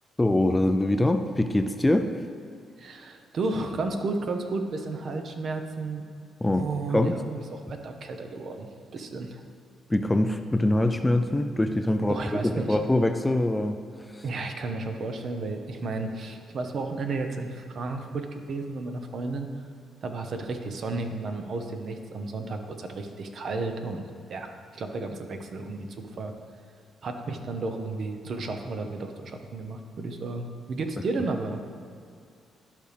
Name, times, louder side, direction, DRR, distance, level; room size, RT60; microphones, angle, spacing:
voice 1, 0.2-2.1 6.4-6.7 6.9-7.1 9.9-13.8 14.1-14.2, left 1 dB, 10° left, 8 dB, 0.4 m, -24 dB
voice 2, 2.8-6.0 6.5-9.4 12.1-12.8 14.2-19.5 20.0-24.0 24.3-26.3 27.0-31.6, right 3 dB, 55° right, 5 dB, 0.8 m, -33 dB
12.0 x 5.1 x 3.4 m, 2.4 s
cardioid pair, 90°, 0 cm